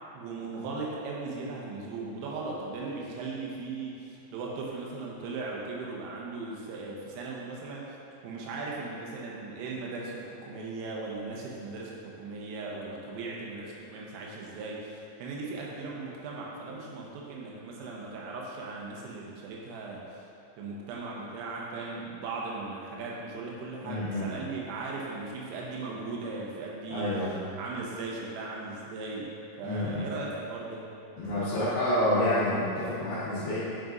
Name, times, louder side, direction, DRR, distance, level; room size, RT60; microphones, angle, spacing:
voice 1, 0.1-8.0 8.2-20.2 20.6-27.1 27.6-29.3 29.6-30.9, right 3 dB, 90° right, -4 dB, 3.5 m, -38 dB
voice 2, 23.8-24.3 26.9-27.4 29.6-30.0 31.2-33.6, left 1 dB, 70° left, -13 dB, 3.1 m, -28 dB
9.1 x 5.1 x 2.5 m, 2.6 s
omnidirectional pair, 5.8 m